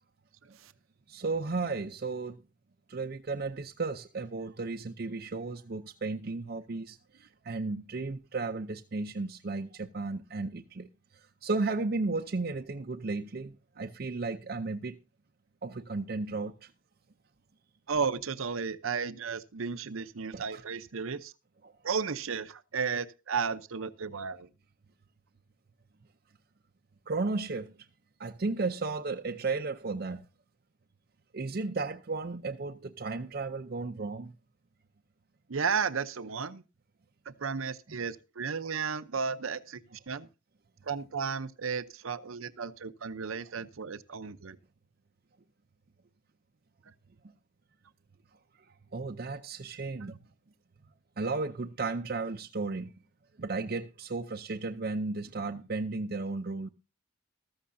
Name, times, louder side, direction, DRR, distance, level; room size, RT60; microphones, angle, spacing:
voice 1, 1.1-2.4 2.9-10.9 11.4-14.9 15.6-16.7 20.3-20.6 27.1-27.7 28.2-30.2 31.3-34.3 48.9-50.2 51.2-52.9 53.4-56.7, right 3 dB, 45° right, 0.6 m, -34 dB
voice 2, 17.9-21.3 21.8-24.5 35.5-36.6 37.3-40.3 40.9-44.6, right 5 dB, 80° right, 0.7 m, -34 dB
14.0 x 13.5 x 2.7 m
head